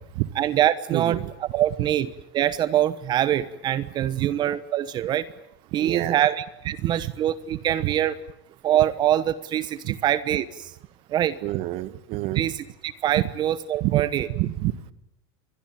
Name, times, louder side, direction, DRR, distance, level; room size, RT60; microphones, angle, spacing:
voice 1, 0.4-5.2 5.7-8.2 8.6-10.7 11.1-11.4 12.3-12.5 12.8-14.3, right 11 dB, 35° right, 16 dB, 1.1 m, -24 dB
voice 2, 0.9-1.3 4.2-4.3 5.7-6.3 6.8-7.1 7.5-7.9 9.8-9.9 11.4-12.4 13.2-13.3 13.8-14.0 14.3-14.7, right 17 dB, 50° right, 16 dB, 1.3 m, -27 dB
28.0 x 22.0 x 9.1 m, 0.81 s
supercardioid pair, 135°, 13 cm